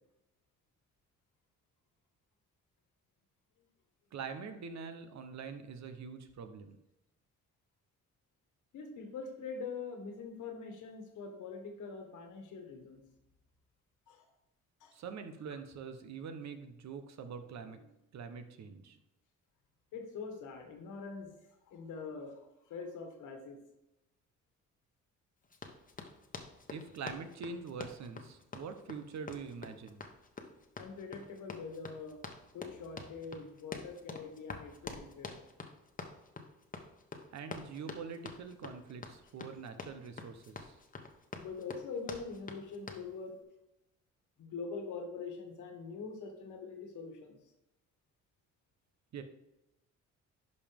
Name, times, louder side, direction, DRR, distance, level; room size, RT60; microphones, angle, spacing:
voice 1, 4.1-6.8 14.9-19.0 26.7-30.0 37.3-40.8 49.1-49.2, right 5 dB, 65° right, 8 dB, 1.0 m, -44 dB
voice 2, 8.7-13.0 14.1-14.3 14.8-15.0 19.9-21.3 21.7-23.6 30.8-32.2 32.5-35.4 41.4-43.4 44.4-47.4, left 4 dB, 85° left, 4 dB, 1.8 m, -44 dB
Run, 25.5-43.1, left 4 dB, 25° left, 1.1 m, -47 dB
11.0 x 5.4 x 3.6 m, 0.90 s
cardioid pair, 90°, 30 cm